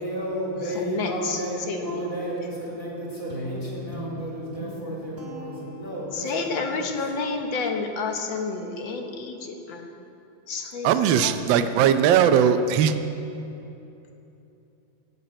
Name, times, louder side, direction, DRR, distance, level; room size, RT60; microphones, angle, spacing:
voice 1, 0.0-6.9, equal, 40° left, -6 dB, 4.0 m, -33 dB
voice 2, 0.6-2.1 6.1-10.0 10.5-11.7, left 4 dB, 65° left, 4 dB, 1.9 m, -30 dB
Guitar, 3.3-6.6, right 1 dB, 30° right, 1.9 m, -38 dB
voice 3, 10.8-12.9, right 8 dB, 70° right, 9 dB, 1.3 m, -19 dB
12.5 x 8.0 x 8.9 m, 2.8 s
omnidirectional pair, 2.3 m